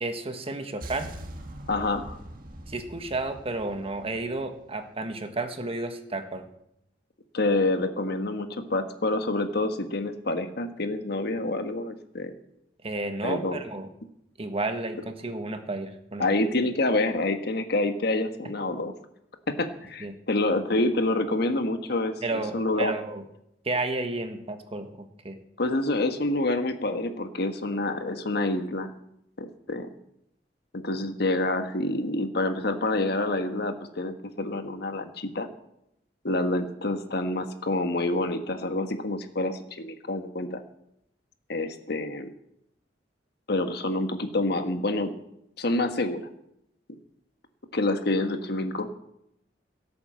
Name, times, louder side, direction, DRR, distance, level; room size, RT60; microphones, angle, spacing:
voice 1, 0.0-1.1 2.7-6.5 12.8-13.9 14.4-16.4 20.0-20.2 22.2-23.2 23.6-25.4, right 2 dB, 35° right, 7 dB, 1.5 m, -32 dB
sound 1, 0.8-4.9, right 1 dB, 50° right, 2.0 m, -43 dB
voice 2, 1.7-2.2 7.3-12.3 13.2-13.6 16.2-18.9 19.5-22.1 22.5-22.9 25.6-28.9 29.4-29.9 30.7-35.5 36.2-40.6 41.5-42.3 43.5-45.2 45.6-46.2 47.7-48.9, left 2 dB, 60° left, 7 dB, 1.4 m, -27 dB
16.5 x 8.7 x 7.6 m, 0.78 s
head